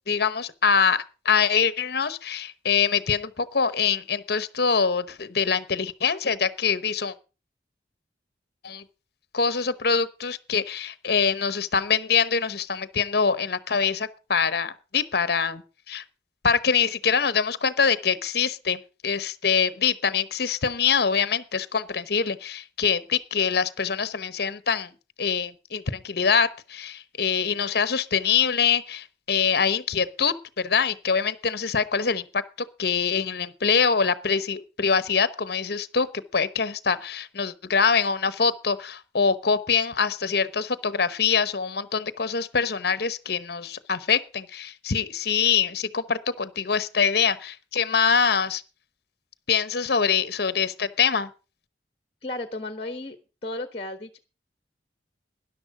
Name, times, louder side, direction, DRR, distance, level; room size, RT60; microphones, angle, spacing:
voice 1, 0.1-7.1 8.6-8.8 9.3-15.6 15.9-16.0 16.4-24.9 25.2-36.1 36.3-48.6 49.5-51.3, left 6 dB, 60° left, 0.9 m, -24 dB
voice 2, 52.2-53.2 53.4-54.2, left 2 dB, 35° left, 1.2 m, -33 dB
13.0 x 11.0 x 4.9 m
head